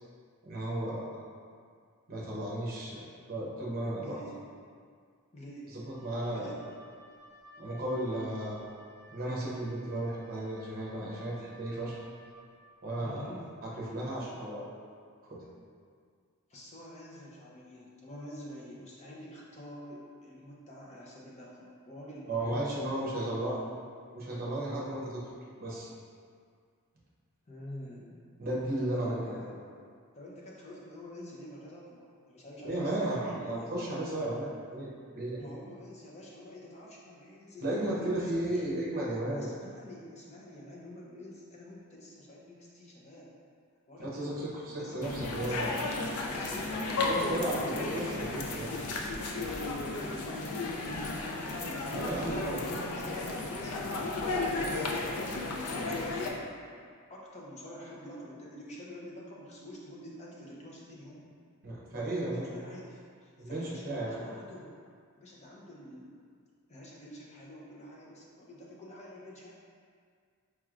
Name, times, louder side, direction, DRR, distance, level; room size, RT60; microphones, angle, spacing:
voice 1, 0.4-1.1 2.1-4.2 5.7-6.5 7.6-8.6 9.1-12.0 12.8-13.3 13.6-14.7 15.3-15.4 22.3-23.6 24.1-25.2 25.6-25.9 28.4-29.4 32.6-34.9 35.1-35.4 37.6-39.5 44.0-45.7 47.1-48.7 51.9-52.7 61.6-62.5 63.4-64.2, right 1 dB, 40° right, -5 dB, 0.8 m, -34 dB
voice 2, 4.0-4.4 5.3-5.7 6.3-6.6 13.0-13.5 16.5-22.9 27.5-28.2 28.8-29.5 30.2-33.6 35.4-38.6 39.4-43.3 43.9-44.5 44.8-44.9 45.3-49.1 49.4-49.7 50.7-51.4 52.0-52.6 53.0-54.9 55.6-56.6 57.1-61.3 62.1-64.7 65.2-66.1 66.7-69.5, left 1 dB, 30° left, -5 dB, 0.6 m, -48 dB
Wind instrument woodwind instrument, 5.8-12.5, right 1 dB, 10° right, 1.2 m, -56 dB
sound 1, 45.0-56.3, left 3 dB, 75° left, 0.4 m, -34 dB
4.7 x 3.1 x 2.4 m, 2.1 s
head